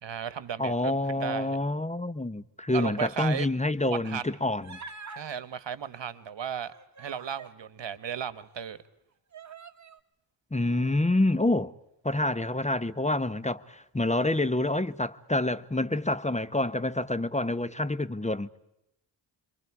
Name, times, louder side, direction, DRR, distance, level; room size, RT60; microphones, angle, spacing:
voice 1, 0.0-1.6 2.7-3.5 3.9-4.2 5.1-8.8, right 8 dB, 70° right, 1.4 m, -35 dB
voice 2, 0.6-4.8 10.5-11.7 12.0-18.5, left 2 dB, 15° left, 1.0 m, -27 dB
Human voice, 4.6-5.3 6.5-7.6 8.3-8.4 9.3-10.0, right 4 dB, 40° right, 1.8 m, -45 dB
30.0 x 23.5 x 4.8 m
cardioid pair, 60°, 45 cm